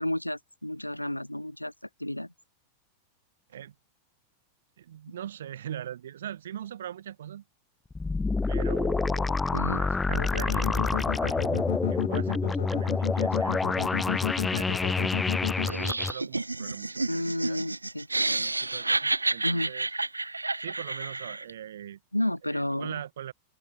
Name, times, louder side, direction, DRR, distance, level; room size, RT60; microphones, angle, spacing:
voice 1, 0.0-1.7 2.0-2.3 9.5-9.8 17.1-18.5 19.4-19.7 22.1-23.0, left 1 dB, 90° left, 6.6 m, -31 dB
voice 2, 4.8-7.4 8.5-9.4 9.7-15.1 15.6-17.6 18.3-19.9 20.6-22.0 22.5-23.3, right 10 dB, 60° right, 6.5 m, -41 dB
sound 1, 7.9-16.1, left 3 dB, 10° left, 0.8 m, -27 dB
sound 2, 10.2-15.7, left 14 dB, 55° left, 3.1 m, -31 dB
Laughter, 15.7-21.5, right 2 dB, 80° right, 3.8 m, -30 dB
open air
figure-of-eight pair, 90°, 0 cm